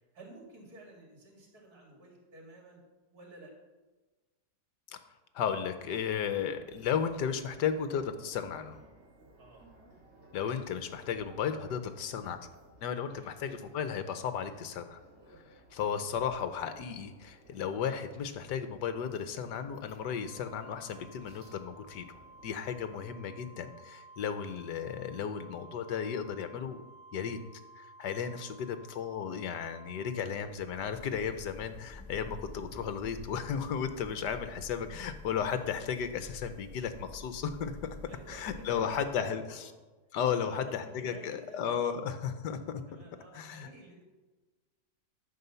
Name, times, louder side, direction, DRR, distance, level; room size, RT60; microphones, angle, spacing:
voice 1, 0.1-2.8 3.1-3.5 9.4-9.6 13.0-13.3 24.2-24.4 38.1-39.7 40.3-42.1 42.9-44.0, right 2 dB, 60° right, -1 dB, 2.9 m, -52 dB
voice 2, 5.3-8.8 10.3-12.4 12.8-15.0 15.7-26.8 27.1-27.4 27.8-37.7 38.3-39.7 40.1-42.8 43.3-43.7, left 7 dB, 75° left, 9 dB, 1.5 m, -34 dB
sound 1, 5.7-23.1, right 2 dB, 40° right, 2.1 m, -59 dB
Organ, 20.2-30.9, right 1 dB, 80° right, 2.2 m, -55 dB
sound 2, 30.3-39.4, left 1 dB, 5° right, 2.8 m, -49 dB
13.5 x 4.9 x 6.9 m, 1.2 s
omnidirectional pair, 1.9 m